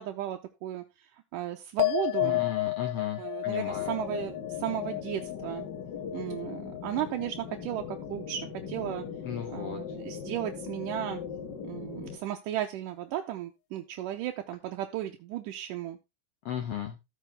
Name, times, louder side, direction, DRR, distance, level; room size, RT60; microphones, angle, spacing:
voice 1, 0.0-2.4 3.2-5.7 6.1-9.1 9.5-11.2 11.6-16.0, right 12 dB, 80° right, 4 dB, 2.3 m, -35 dB
sound 1, 1.8-8.5 8.8-9.4, left 19 dB, 85° left, 2.3 m, -33 dB
voice 2, 2.2-3.9 9.2-10.0 16.4-17.0, left 9 dB, 65° left, 6 dB, 1.6 m, -36 dB
sound 2, 3.7-12.2, left 6 dB, 50° left, 1.4 m, -40 dB
13.0 x 7.3 x 3.5 m, 0.24 s
omnidirectional pair, 3.8 m